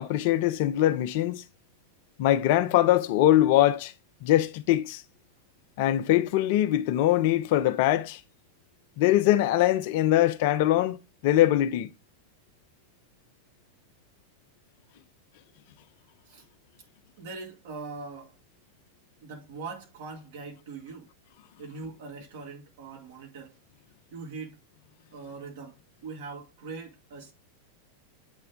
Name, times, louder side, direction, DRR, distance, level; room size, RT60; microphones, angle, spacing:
voice 1, 0.0-1.4 2.2-3.9 4.2-5.0 5.8-8.2 9.0-11.0 11.2-11.9, left 13 dB, 50° left, 0.5 m, -22 dB
voice 2, 17.2-18.3 19.2-21.1 21.6-23.5 24.1-24.6 25.1-27.3, right 4 dB, 55° right, 2.1 m, -41 dB
8.0 x 3.3 x 3.6 m
figure-of-eight pair, 90°, 0 cm